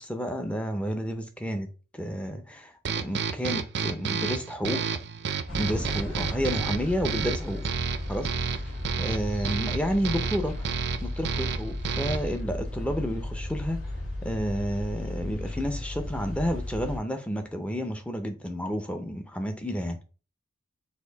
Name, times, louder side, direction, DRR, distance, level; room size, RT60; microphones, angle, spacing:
voice 1, 0.0-1.7 1.9-2.7 3.0-4.8 5.6-7.6 8.1-8.6 9.0-10.7 11.0-13.8 14.2-20.0, equal, 5° left, 0.5 m, -30 dB
sound 1, 2.8-12.4, right 6 dB, 55° right, 0.4 m, -31 dB
sound 2, 5.5-17.0, left 1 dB, 40° left, 2.1 m, -35 dB
4.2 x 2.6 x 3.9 m
head